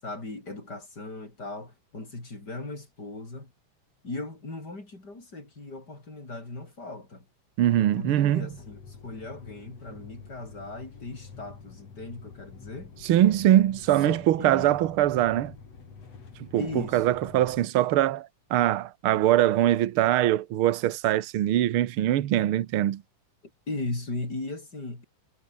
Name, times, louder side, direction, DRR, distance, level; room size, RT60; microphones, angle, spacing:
voice 1, 0.0-3.5 4.0-7.3 7.8-12.9 14.0-14.8 16.6-17.2 23.7-25.0, left 2 dB, 30° left, 6.7 m, -38 dB
voice 2, 7.6-8.5 13.0-15.5 16.4-16.7 16.9-23.0, right 13 dB, 70° right, 1.3 m, -23 dB
sound 1, 8.5-17.7, left 5 dB, 50° left, 5.0 m, -47 dB
omnidirectional pair, 3.8 m